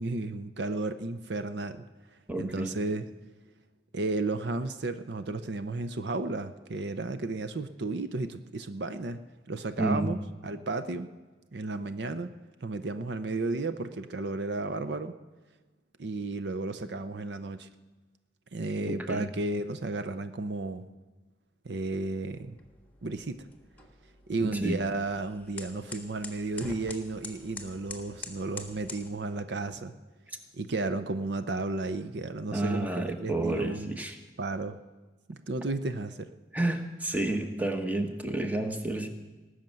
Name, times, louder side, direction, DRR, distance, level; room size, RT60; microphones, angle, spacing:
voice 1, 0.0-1.8 2.4-3.1 3.9-9.2 9.5-10.2 10.4-11.1 11.5-12.3 12.6-15.1 16.0-17.7 18.5-20.8 21.6-22.6 23.0-23.4 24.3-29.9 30.5-34.0 34.4-34.8 35.3-36.3, right 2 dB, 60° right, 10 dB, 0.6 m, -33 dB
voice 2, 2.3-2.7 9.8-10.1 18.9-19.3 24.4-24.8 32.5-34.2 36.5-39.1, right 2 dB, 10° right, 5 dB, 1.1 m, -30 dB
sound 1, 22.3-29.1, left 3 dB, 10° left, 1.4 m, -46 dB
19.5 x 6.5 x 9.1 m, 1.2 s
head